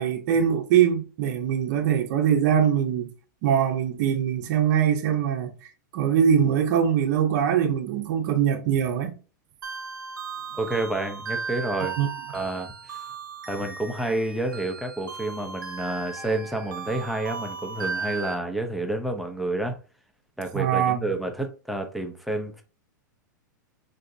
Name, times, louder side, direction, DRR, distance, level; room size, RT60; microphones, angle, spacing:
voice 1, 0.0-3.1 3.4-5.5 5.9-9.1 12.0-12.1 20.5-21.1, right 8 dB, 55° right, 0.7 m, -22 dB
sound 1, 9.6-18.3, right 5 dB, 90° right, 0.7 m, -36 dB
voice 2, 10.6-12.0 12.3-13.0 13.5-19.8 20.4-22.6, right 2 dB, ahead, 0.6 m, -29 dB
3.6 x 2.7 x 2.5 m
hypercardioid pair, 115°, 10 cm